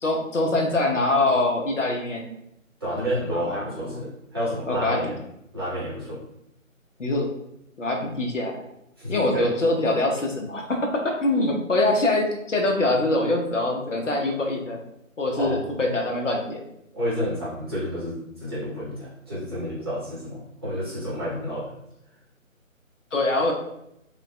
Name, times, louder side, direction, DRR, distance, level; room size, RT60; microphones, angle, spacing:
voice 1, 0.0-2.3 3.3-4.0 4.7-5.1 7.0-7.3 7.8-8.6 9.1-14.8 15.2-16.6 23.1-23.5, left 2 dB, 65° left, 1 dB, 0.8 m, -24 dB
voice 2, 2.8-5.1 5.5-6.2 9.0-9.5 15.3-15.6 16.9-21.7, equal, 20° right, -10 dB, 0.9 m, -30 dB
4.7 x 2.3 x 2.3 m, 0.80 s
figure-of-eight pair, 150°, 41 cm